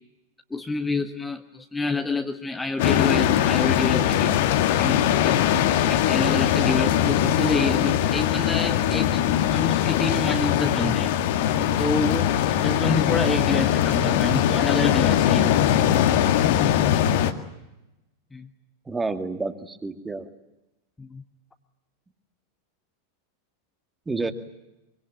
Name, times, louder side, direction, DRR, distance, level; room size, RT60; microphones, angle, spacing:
voice 1, 0.5-4.4 4.8-5.0 5.2-5.4 5.9-9.3 9.5-11.1 11.8-15.7 18.3-18.5 21.0-21.2, left 3 dB, 10° left, 5 dB, 1.4 m, -28 dB
sound 1, 2.8-17.3, left 10 dB, 50° left, 1.9 m, -21 dB
voice 2, 18.9-20.3 24.1-24.3, right 3 dB, 10° right, 8 dB, 2.2 m, -29 dB
25.0 x 24.0 x 9.1 m, 0.96 s
figure-of-eight pair, 90°, 0 cm